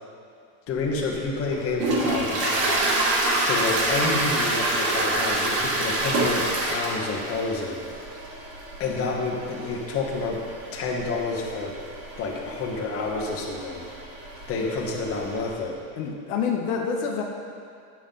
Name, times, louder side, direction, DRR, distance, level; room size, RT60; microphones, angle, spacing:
voice 1, 0.7-2.9 3.2-7.9 8.8-10.4 10.7-11.8 12.2-13.8 14.5-15.8, left 3 dB, 30° left, -1 dB, 1.1 m, -29 dB
Toilet flush, 0.8-15.5, right 2 dB, 55° right, 2.3 m, -28 dB
voice 2, 16.0-17.2, left 6 dB, 60° left, 1 dB, 0.9 m, -28 dB
9.9 x 7.2 x 3.8 m, 2.3 s
cardioid pair, 165°, 46 cm